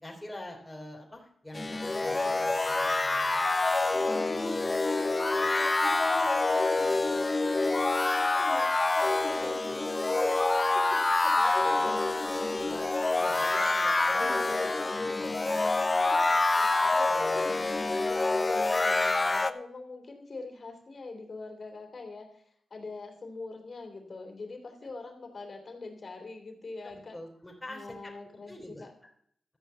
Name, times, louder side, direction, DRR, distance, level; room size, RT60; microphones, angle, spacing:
voice 1, 0.0-3.4 4.0-8.4 8.9-12.8 13.2-17.7 24.8-24.9 26.8-28.1 28.5-28.9, left 1 dB, 20° left, 0 dB, 3.5 m, -43 dB
sound 1, 1.5-19.5, left 3 dB, 35° left, 0.7 m, -27 dB
voice 2, 8.4-8.7 14.5-14.8 18.5-22.4 22.7-27.2 27.7-28.9, left 3 dB, 55° left, 3 dB, 3.2 m, -43 dB
13.5 x 5.5 x 8.1 m, 0.67 s
cardioid pair, 45°, 0 cm